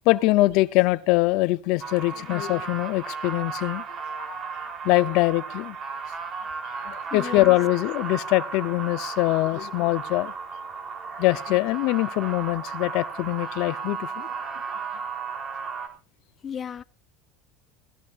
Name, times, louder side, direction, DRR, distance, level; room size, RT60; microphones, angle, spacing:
voice 1, 0.1-3.8 4.1-4.4 4.8-5.8 6.9-10.3 11.2-14.3, left 20 dB, 65° left, 0.7 m, -23 dB
sound 1, 1.8-15.9, right 5 dB, 35° right, 3.6 m, -35 dB
voice 2, 7.1-7.5 16.4-16.8, left 8 dB, 30° left, 0.7 m, -34 dB
18.0 x 15.0 x 2.5 m
supercardioid pair, 115°, 0 cm